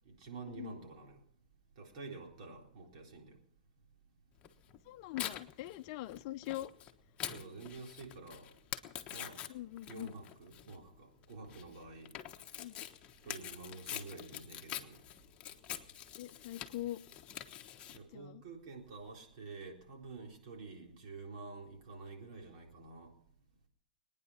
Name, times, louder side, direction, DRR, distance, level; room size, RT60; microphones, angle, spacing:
voice 1, 0.1-1.2 1.8-3.4 7.3-8.5 9.1-9.4 9.9-12.1 13.2-15.0 17.9-23.1, right 3 dB, 55° right, 4.0 m, -49 dB
Tearing, 4.4-18.0, left 11 dB, 30° left, 1.2 m, -46 dB
voice 2, 4.9-6.7 9.5-10.1 12.6-12.8 16.2-17.0 18.1-18.4, left 15 dB, 45° left, 0.7 m, -42 dB
22.0 x 9.7 x 5.8 m
hypercardioid pair, 125°, 4 cm